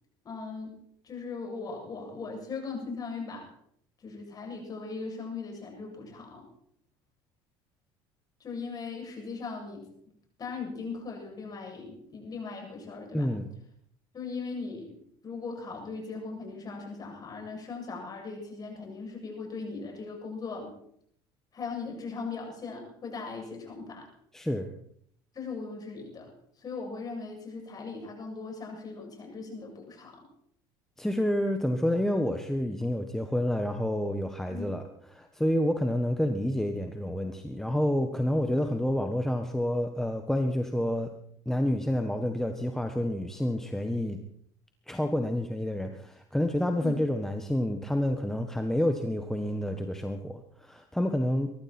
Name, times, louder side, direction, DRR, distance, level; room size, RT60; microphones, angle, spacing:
voice 1, 0.2-0.7 1.0-3.5 4.0-6.5 8.4-9.9 10.4-13.3 14.1-15.0 15.2-20.7 21.5-24.1 25.3-26.3 26.6-30.2 34.5-34.8 46.8-47.0, left 4 dB, 35° left, 1 dB, 7.7 m, -39 dB
voice 2, 13.1-13.5 24.3-24.7 31.0-34.8 35.1-41.1 41.4-44.2 44.9-51.5, left 1 dB, 5° left, 5 dB, 1.4 m, -29 dB
22.5 x 13.5 x 4.4 m, 0.67 s
supercardioid pair, 95°, 11 cm